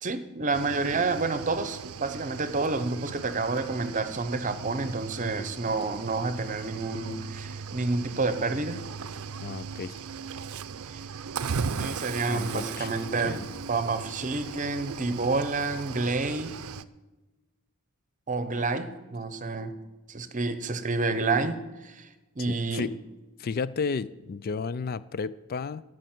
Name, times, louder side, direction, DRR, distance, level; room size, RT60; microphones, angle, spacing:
voice 1, 0.0-8.8 10.9-11.0 11.7-16.6 18.3-19.7 20.1-22.1 22.4-22.9, right 3 dB, 35° right, 11 dB, 0.9 m, -29 dB
Cricket / Waves surf, 0.5-16.8, right 5 dB, 80° right, 0.5 m, -38 dB
voice 2, 9.4-10.0 12.3-12.9 13.2-13.4 22.5-23.0 23.4-25.8, left 5 dB, 45° left, 17 dB, 0.3 m, -33 dB
13.5 x 6.4 x 9.3 m, 1.1 s
head